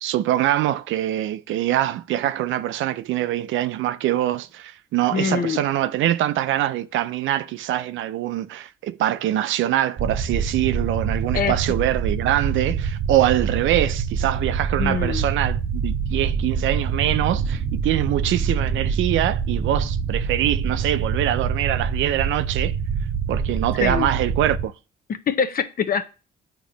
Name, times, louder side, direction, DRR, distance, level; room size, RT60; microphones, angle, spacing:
voice 1, 0.0-22.8 23.3-24.7, right 13 dB, 75° right, 0.5 m, -24 dB
voice 2, 5.1-5.6 11.3-11.6 14.8-15.3 23.7-24.1 25.1-26.0, left 6 dB, 45° left, 0.7 m, -24 dB
sound 1, 10.0-24.6, right 6 dB, 55° right, 0.8 m, -25 dB
8.3 x 3.0 x 5.0 m
cardioid pair, 90°, 20 cm